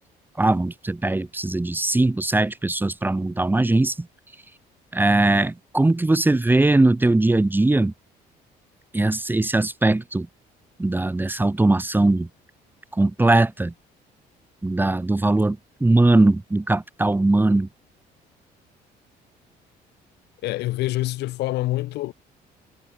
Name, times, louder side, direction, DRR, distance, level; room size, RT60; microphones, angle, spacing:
voice 1, 0.4-4.1 4.9-7.9 8.9-10.3 10.8-12.3 12.9-13.7 14.6-17.7, right 2 dB, 10° right, 2.0 m, -20 dB
voice 2, 20.4-22.1, left 17 dB, 80° left, 3.9 m, -26 dB
cardioid pair, 110°, 17 cm